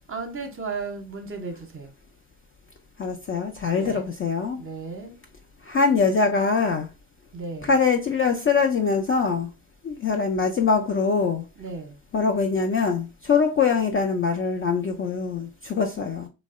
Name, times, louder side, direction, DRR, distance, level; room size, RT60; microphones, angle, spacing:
voice 1, 0.1-1.9 3.6-4.1 4.6-5.2 7.3-7.7 11.6-12.0, right 4 dB, 30° right, 0.7 m, -35 dB
voice 2, 3.0-4.6 5.6-6.9 7.6-9.5 9.8-11.5 12.1-16.3, left 5 dB, 30° left, 0.4 m, -23 dB
2.6 x 2.0 x 2.4 m
supercardioid pair, 65°, 45 cm